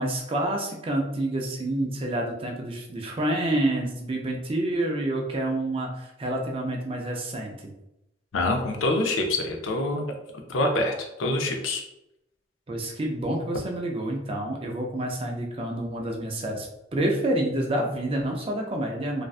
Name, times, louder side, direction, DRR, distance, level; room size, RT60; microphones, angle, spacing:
voice 1, 0.0-7.7 12.7-19.2, right 1 dB, 30° right, 1 dB, 0.4 m, -28 dB
voice 2, 8.3-10.1 10.5-10.9 11.2-11.8, left 2 dB, 85° left, 3 dB, 0.5 m, -25 dB
2.5 x 2.2 x 2.3 m, 0.87 s
head